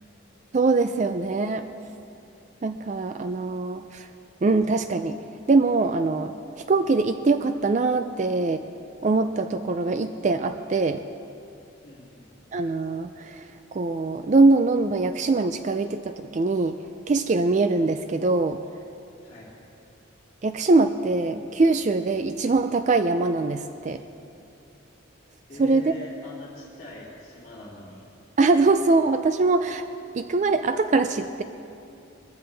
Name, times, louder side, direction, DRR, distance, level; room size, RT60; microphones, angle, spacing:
voice 1, 0.5-1.7 2.6-4.1 4.4-5.2 5.5-6.3 6.7-8.6 9.0-11.0 12.5-13.4 13.7-16.8 17.1-18.6 20.4-24.0 25.6-25.9 28.4-29.8 30.1-31.4, right 3 dB, 35° right, 9 dB, 0.3 m, -22 dB
voice 2, 11.8-12.3 19.2-19.5 25.5-28.0, left 1 dB, 35° left, -10 dB, 2.4 m, -44 dB
21.5 x 14.5 x 3.3 m, 2.6 s
head